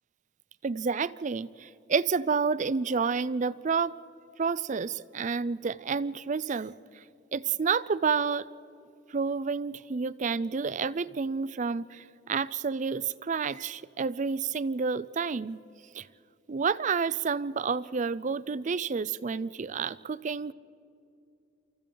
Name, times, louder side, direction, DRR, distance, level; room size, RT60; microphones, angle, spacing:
voice 1, 0.6-3.9 4.4-7.0 7.3-8.5 9.1-15.6 15.9-16.1 16.5-20.5, right 5 dB, 40° right, 19 dB, 0.4 m, -29 dB
28.0 x 24.5 x 3.9 m, 2.6 s
head